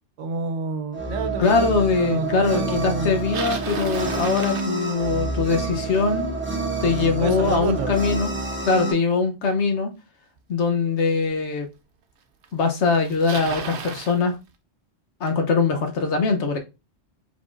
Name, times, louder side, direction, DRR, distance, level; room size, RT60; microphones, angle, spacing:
voice 1, 0.2-1.7 1.9-3.2 7.2-7.9, right 3 dB, 75° right, 9 dB, 1.0 m, -28 dB
sound 1, 0.9-8.9, right 3 dB, 15° right, 0.6 m, -28 dB
voice 2, 1.4-6.3 6.8-8.3 8.6-9.9 10.5-11.7 12.5-14.4 15.2-16.6, left 4 dB, 65° left, 5 dB, 1.1 m, -22 dB
Bicycle, 3.0-5.3 10.4-10.5 11.3-11.4 12.4-12.5 12.7-14.2, right 6 dB, 55° right, 0.7 m, -34 dB
5.1 x 3.7 x 2.5 m, 0.26 s
omnidirectional pair, 1.3 m